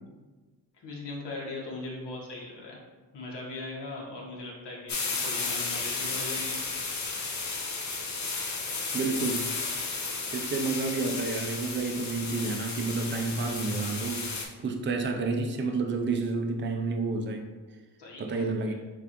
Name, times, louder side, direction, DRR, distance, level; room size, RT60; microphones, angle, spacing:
voice 1, 0.8-2.8 3.1-6.5 18.0-18.7, left 2 dB, 85° left, -3 dB, 1.3 m, -39 dB
sound 1, 4.9-14.5, left 4 dB, 45° left, 0.7 m, -33 dB
voice 2, 8.9-9.5 10.3-17.5 18.2-18.7, right 3 dB, 30° right, 4 dB, 0.4 m, -30 dB
6.9 x 2.4 x 2.9 m, 1.3 s
wide cardioid pair, 145°, 40 cm